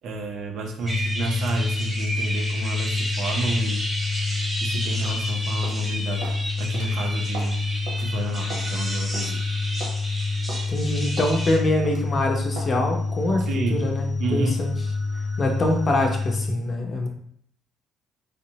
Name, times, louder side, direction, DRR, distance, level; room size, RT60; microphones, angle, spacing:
voice 1, 0.0-3.8 4.6-7.6 8.0-9.4 13.5-13.8 14.2-14.7, right 2 dB, 65° right, 3 dB, 0.6 m, -30 dB
sound 1, 0.8-11.6, equal, ahead, 0.9 m, -32 dB
sound 2, 0.8-16.5, left 3 dB, 25° right, 0.7 m, -28 dB
sound 3, 5.0-5.2 5.6-5.8 6.2-6.4 6.7-6.9 7.3-7.6 7.9-8.0 8.5-8.7 9.1-9.3 9.8-10.0 10.5-10.6 11.2-11.4 11.8-12.1 12.6-12.7 13.3-13.5, right 3 dB, 85° right, 0.9 m, -37 dB
voice 2, 10.7-14.7 15.4-17.1, left 1 dB, 35° left, 3 dB, 0.6 m, -24 dB
3.5 x 2.0 x 2.8 m, 0.66 s
cardioid pair, 125°, 0 cm